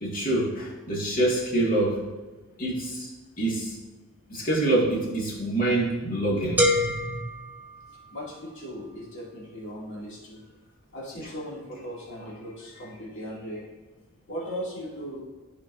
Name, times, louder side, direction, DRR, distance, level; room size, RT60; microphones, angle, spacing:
voice 1, 0.0-2.0 2.6-3.1 3.4-3.7 4.3-7.2, right 2 dB, 40° left, -3 dB, 1.9 m, -26 dB
sound 1, 6.6-8.4, left 1 dB, 10° right, 0.7 m, -27 dB
voice 2, 8.1-10.4 10.9-13.7 14.3-15.2, equal, 60° left, -7 dB, 2.5 m, -38 dB
14.0 x 5.3 x 2.6 m, 1.2 s
head